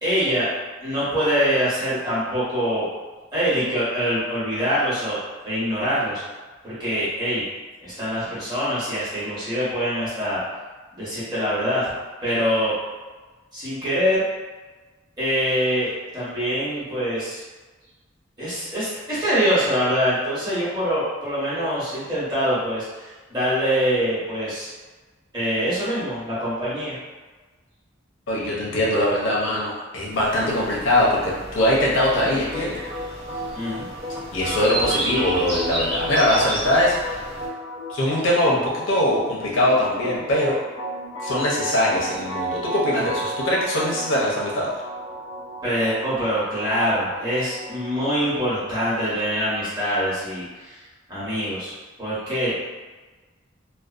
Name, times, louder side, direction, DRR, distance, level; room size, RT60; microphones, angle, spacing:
voice 1, 0.0-0.5 0.8-2.9 3.3-5.2 5.4-6.2 6.6-7.4 7.8-10.4 10.9-11.9 12.2-12.7 13.5-14.2 15.2-15.9 16.1-17.4 18.4-24.7 25.3-27.0 33.5-33.9 45.6-50.7 51.1-52.5, equal, 20° right, -12 dB, 1.2 m, -24 dB
voice 2, 28.3-32.9 34.3-37.3 37.9-40.6 41.2-44.7, left 1 dB, 70° left, -5 dB, 0.6 m, -22 dB
sound 1, 30.1-37.5, right 1 dB, 55° right, 1.0 m, -32 dB
sound 2, 32.2-48.2, right 1 dB, 35° right, 0.7 m, -34 dB
2.5 x 2.2 x 2.4 m, 1.3 s
head